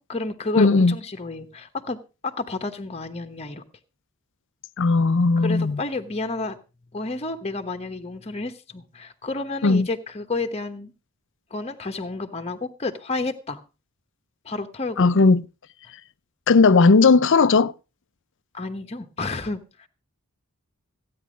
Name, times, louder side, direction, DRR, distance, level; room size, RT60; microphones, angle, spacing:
voice 1, 0.0-2.0 2.2-3.6 5.4-6.6 6.9-10.9 11.5-13.6 14.4-15.1 18.5-19.9, left 3 dB, 30° left, 1.1 m, -30 dB
voice 2, 0.6-0.9 4.8-5.8 9.6-9.9 15.0-15.4 16.5-17.7, left 4 dB, 55° left, 0.6 m, -16 dB
15.0 x 9.5 x 5.1 m
head